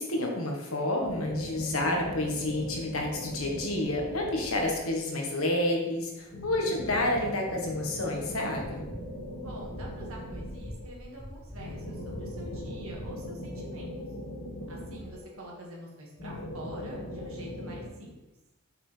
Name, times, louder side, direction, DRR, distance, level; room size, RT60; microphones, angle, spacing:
voice 1, 0.0-8.9, left 1 dB, 80° left, 1 dB, 1.4 m, -29 dB
sound 1, 1.0-5.2 6.3-10.9 11.6-15.6 16.2-17.9, left 1 dB, 50° left, 1.5 m, -40 dB
sound 2, 5.8-13.1, equal, 5° left, 1.6 m, -46 dB
voice 2, 9.3-13.9 14.7-18.1, equal, 80° right, -2 dB, 1.8 m, -46 dB
6.4 x 5.6 x 3.3 m, 0.99 s
head